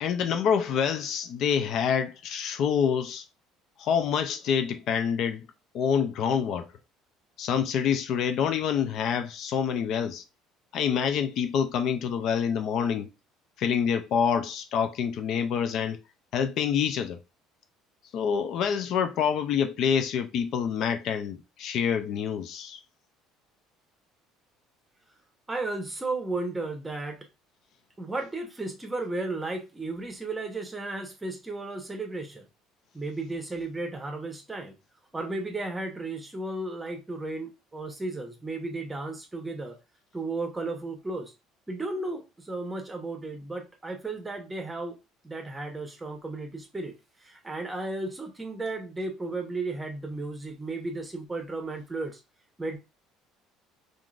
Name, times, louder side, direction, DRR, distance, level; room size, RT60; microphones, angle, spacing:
voice 1, 0.0-3.2 3.8-5.5 5.7-6.7 7.4-10.2 10.7-13.1 13.6-16.0 16.3-17.2 18.1-22.8, left 7 dB, 60° left, 0.4 m, -27 dB
voice 2, 25.5-27.3 28.0-32.5 32.9-34.8 35.1-39.8 40.1-41.3 41.7-45.0 45.2-46.9 47.2-52.2 52.6-52.8, right 2 dB, 15° right, 0.8 m, -34 dB
3.6 x 2.4 x 2.3 m
supercardioid pair, 105°, 0 cm